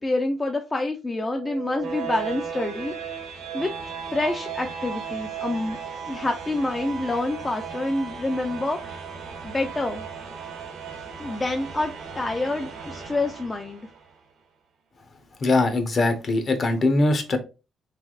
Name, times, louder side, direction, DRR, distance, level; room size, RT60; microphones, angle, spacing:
voice 1, 0.0-3.2 3.5-3.7 4.1-5.8 6.1-9.0 9.4-10.0 11.2-13.9, left 2 dB, 25° left, 4 dB, 0.4 m, -27 dB
sound 1, 1.1-14.1, right 6 dB, 75° right, 0.9 m, -36 dB
voice 2, 15.4-17.4, left 2 dB, 45° left, 7 dB, 0.8 m, -21 dB
3.3 x 3.0 x 2.4 m, 0.30 s
cardioid pair, 90°, 0 cm